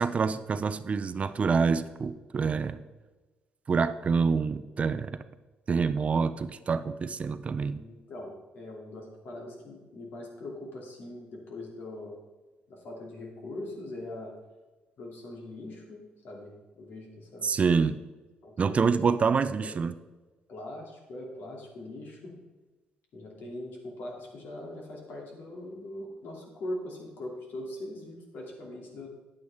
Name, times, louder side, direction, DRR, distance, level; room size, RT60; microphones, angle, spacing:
voice 1, 0.0-2.8 3.7-5.2 5.7-7.8 17.4-18.0 18.6-19.9, right 5 dB, 40° right, 13 dB, 0.4 m, -26 dB
voice 2, 7.5-12.2 12.7-14.3 15.0-17.5 18.4-19.1 19.6-19.8 20.5-22.3 23.1-29.1, left 1 dB, 70° left, -1 dB, 2.8 m, -41 dB
9.9 x 8.6 x 3.6 m, 1.2 s
cardioid pair, 95°, 3 cm